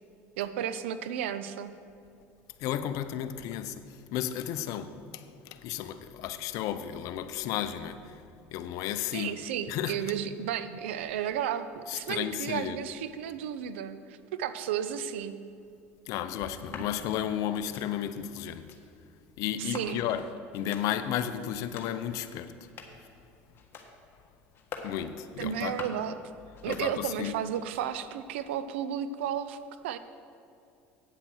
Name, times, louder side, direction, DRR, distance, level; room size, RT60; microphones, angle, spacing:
voice 1, 0.4-1.8 9.1-15.4 19.6-20.0 25.4-26.2 26.6-29.6 29.8-30.0, right 9 dB, 85° right, 0.5 m, -33 dB
voice 2, 2.6-8.2 8.5-9.3 9.7-10.0 11.9-12.8 16.1-18.7 19.4-20.3 20.5-22.5 24.8-25.8 26.7-27.4, left 10 dB, 65° left, 0.6 m, -33 dB
sound 1, 16.5-16.9 17.5-17.9 18.5-18.8 19.6-20.2 20.5-20.9 21.5-22.0 22.5-23.1 23.5-23.9 24.5-25.0 25.5-26.1 26.5-27.2 27.5-28.1, left 4 dB, 35° left, 1.5 m, -46 dB
9.1 x 7.6 x 6.2 m
supercardioid pair, 95°, 6 cm